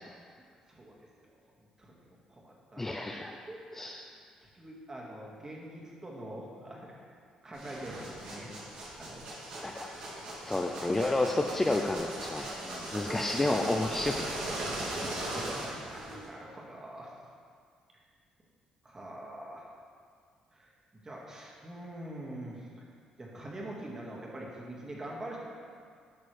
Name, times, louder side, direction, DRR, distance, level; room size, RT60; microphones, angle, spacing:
voice 1, 0.7-1.3 1.8-6.9 7.4-8.5 9.0-9.3 12.6-12.9 14.6-17.1 17.9-18.0 18.8-19.7 20.5-20.7 21.0-22.8 23.2-25.4, right 1 dB, 30° right, -3 dB, 1.9 m, -45 dB
voice 2, 2.8-3.3 3.7-4.0 9.6-9.9 10.4-14.3, left 2 dB, 15° left, 2 dB, 0.5 m, -30 dB
sound 1, 7.5-16.3, right 1 dB, 85° right, 2.3 m, -39 dB
11.0 x 6.2 x 3.3 m, 2.1 s
cardioid pair, 90°, 2 cm